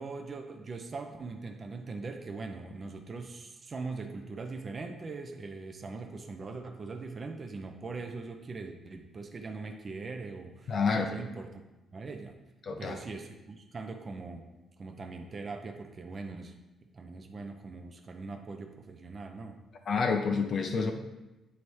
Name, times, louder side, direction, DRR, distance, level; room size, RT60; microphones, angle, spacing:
voice 1, 0.0-11.6 11.9-12.4 12.8-14.4 14.8-16.6 16.9-19.6, right 3 dB, 30° right, 5 dB, 0.4 m, -41 dB
voice 2, 10.7-11.1 12.7-13.0 19.9-20.9, left 5 dB, 45° left, 4 dB, 0.4 m, -28 dB
8.4 x 4.2 x 3.1 m, 1.0 s
cardioid pair, 150°, 0 cm